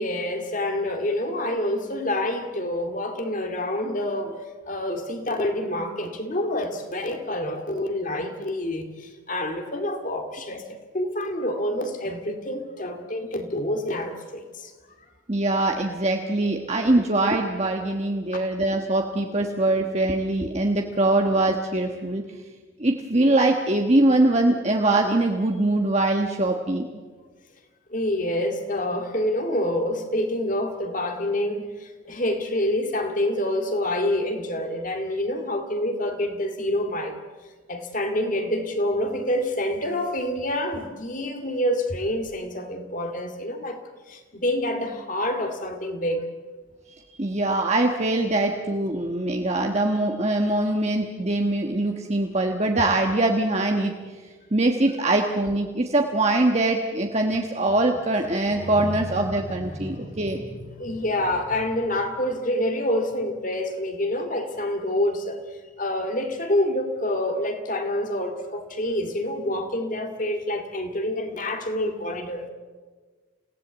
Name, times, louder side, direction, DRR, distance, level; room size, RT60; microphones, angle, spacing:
voice 1, 0.0-4.4 4.7-14.7 27.9-37.2 37.7-43.8 44.1-46.2 58.6-65.4 65.8-72.5, left 1 dB, 40° left, 2.2 m, -27 dB
voice 2, 15.3-22.2 22.8-26.9 47.1-53.9 54.5-60.4, right 2 dB, 30° right, 1.3 m, -23 dB
28.0 x 17.0 x 8.1 m
head